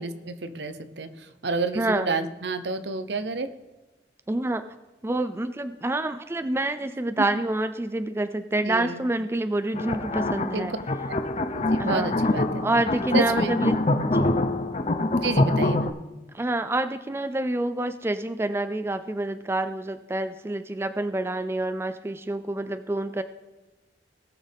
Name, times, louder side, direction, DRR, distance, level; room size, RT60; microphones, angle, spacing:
voice 1, 0.0-3.5 8.6-9.1 10.5-10.8 11.1-11.2 11.5-12.6 13.1-13.5 15.2-15.9, right 3 dB, 75° right, 10 dB, 0.9 m, -30 dB
voice 2, 1.8-2.2 4.3-4.7 5.0-10.7 11.8-12.2 12.6-14.4 16.3-23.2, right 2 dB, 15° right, 10 dB, 0.4 m, -27 dB
sound 1, 9.7-15.9, left 2 dB, 35° left, 0.6 m, -25 dB
19.0 x 6.5 x 3.5 m, 1.2 s
head